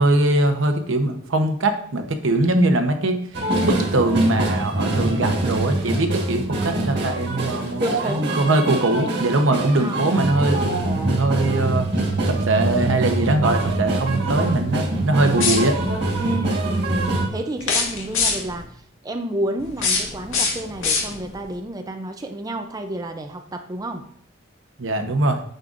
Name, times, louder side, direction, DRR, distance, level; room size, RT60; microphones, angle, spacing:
voice 1, 0.0-11.9 12.3-15.8 24.8-25.4, right 2 dB, 75° right, 6 dB, 0.9 m, -21 dB
sound 1, 3.3-17.3, right 2 dB, 55° right, 1.5 m, -24 dB
voice 2, 7.8-8.4 9.8-10.6 13.9-14.3 16.2-24.1, right 1 dB, 20° right, 6 dB, 0.4 m, -30 dB
sound 2, 15.3-16.0 17.6-18.6 19.6-21.4, left 5 dB, 85° left, 1.8 m, -24 dB
9.0 x 6.5 x 2.5 m, 0.63 s
head